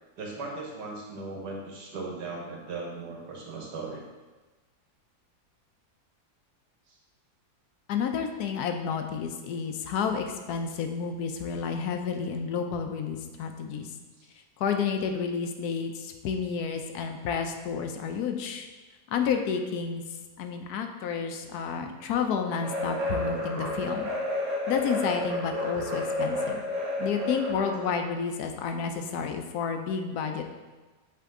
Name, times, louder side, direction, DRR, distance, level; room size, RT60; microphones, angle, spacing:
voice 1, 0.2-4.0 6.9-7.0 21.8-21.9, right 3 dB, 85° right, -1 dB, 1.7 m, -38 dB
voice 2, 7.9-13.9 14.6-18.7 19.1-20.0 20.4-24.1 24.7-26.6 27.0-30.4, left 6 dB, 75° left, 5 dB, 1.1 m, -30 dB
sound 1, 22.6-28.0, left 1 dB, 65° right, 1.3 m, -31 dB
8.3 x 3.4 x 3.7 m, 1.2 s
omnidirectional pair, 1.7 m